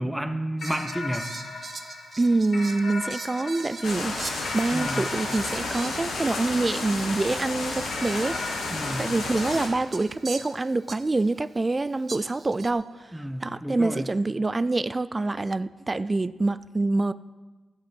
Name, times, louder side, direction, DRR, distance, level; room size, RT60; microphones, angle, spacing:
voice 1, 0.0-1.3 4.7-5.1 8.7-9.1 13.1-14.1, right 1 dB, 5° right, 8 dB, 1.1 m, -31 dB
sound 1, 0.6-7.2 7.9-10.7, left 3 dB, 70° left, 3.9 m, -39 dB
Fowl, 0.6-6.4 6.7-6.8 7.4-11.3 12.1-12.7, right 4 dB, 50° right, 1.0 m, -42 dB
voice 2, 2.2-4.2 4.5-8.7 9.0-17.1, right 2 dB, 30° right, 15 dB, 0.4 m, -26 dB
sound 2, 3.8-9.7, left 3 dB, 85° left, 1.9 m, -31 dB
14.0 x 7.8 x 5.3 m, 1.2 s
supercardioid pair, 55°, 0 cm